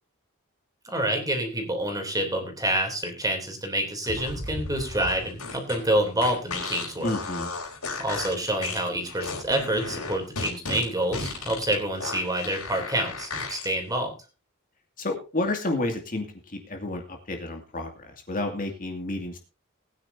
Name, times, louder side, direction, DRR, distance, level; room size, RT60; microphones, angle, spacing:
voice 1, 0.8-7.1 8.0-14.1, right 1 dB, 15° right, 4 dB, 3.2 m, -27 dB
sound 1, 4.0-13.7, left 3 dB, 85° left, 5.2 m, -34 dB
voice 2, 7.0-7.5 15.0-16.3 16.6-19.4, left 2 dB, 40° left, 3 dB, 2.4 m, -30 dB
20.0 x 9.8 x 2.8 m, 0.30 s
head